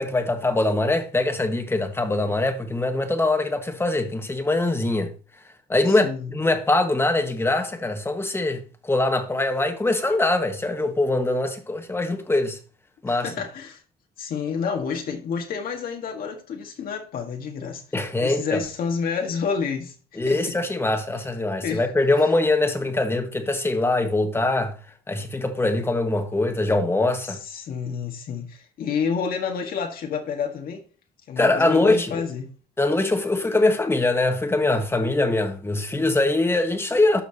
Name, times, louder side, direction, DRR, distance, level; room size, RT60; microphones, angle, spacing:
voice 1, 0.0-5.1 5.7-12.6 13.0-13.3 17.9-18.6 20.2-24.8 25.1-27.4 31.4-32.2 32.8-37.2, left 2 dB, 15° left, 1.5 m, -23 dB
voice 2, 5.9-6.3 13.1-13.8 14.2-17.8 18.2-20.5 21.6-21.8 27.2-30.8 31.3-32.5, left 6 dB, 60° left, 1.8 m, -29 dB
12.5 x 5.8 x 2.9 m
cardioid pair, 110°, 17 cm